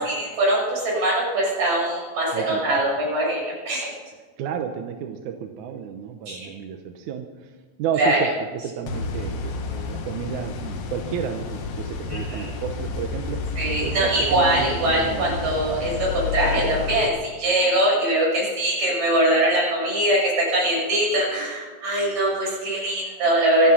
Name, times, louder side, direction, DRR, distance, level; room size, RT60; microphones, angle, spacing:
voice 1, 0.0-3.9 6.3-6.4 8.0-8.2 12.1-12.5 13.6-23.7, right 1 dB, 50° right, -4 dB, 7.7 m, -22 dB
voice 2, 2.3-2.7 4.4-7.5 7.8-8.3 8.6-13.4 13.8-15.4, right 8 dB, 70° right, 5 dB, 2.0 m, -31 dB
sound 1, 8.9-17.1, left 4 dB, 60° left, 1.8 m, -30 dB
25.0 x 8.8 x 5.8 m, 1.4 s
omnidirectional pair, 4.1 m